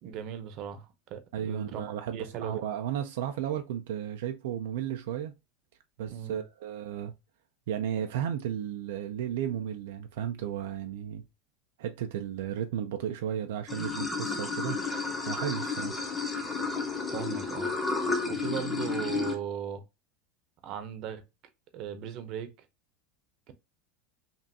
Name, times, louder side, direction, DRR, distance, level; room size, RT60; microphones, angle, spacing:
voice 1, 0.0-1.8 2.1-2.6 6.1-6.4 17.1-17.7 18.3-19.8 20.6-21.2 21.7-22.5 23.5-23.6, right 9 dB, 50° right, 0.8 m, -37 dB
voice 2, 1.3-5.3 6.0-7.1 7.7-11.2 11.8-14.8 15.3-16.0, right 9 dB, 80° right, 0.5 m, -34 dB
Water / Sink (filling or washing), 13.7-19.4, left 4 dB, 10° left, 1.1 m, -32 dB
5.3 x 2.5 x 2.7 m
supercardioid pair, 135°, 0 cm